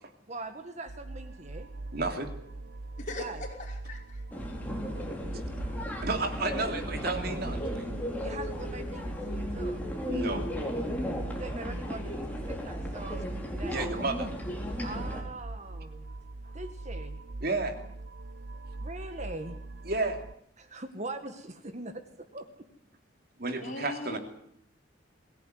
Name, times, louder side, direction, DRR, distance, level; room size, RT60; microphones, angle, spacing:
voice 1, 0.3-1.7 3.2-3.4 8.2-9.8 11.3-13.8 14.8-16.1 16.4-17.2 18.8-19.6 20.6-22.5, right 2 dB, 40° right, 8 dB, 1.7 m, -42 dB
sound 1, 0.9-20.3, right 2 dB, 70° right, 0.8 m, -41 dB
voice 2, 1.9-2.3 5.3-5.4 6.0-7.9 10.0-10.5 13.7-14.3 17.4-17.8 19.9-20.2 23.4-24.2, right 3 dB, 55° right, 5 dB, 3.0 m, -32 dB
voice 3, 3.0-4.5 23.6-24.2, left 2 dB, 40° left, 0 dB, 5.5 m, -40 dB
sound 2, 4.3-15.2, equal, 10° left, 4.5 m, -35 dB
23.0 x 17.0 x 9.5 m, 0.72 s
head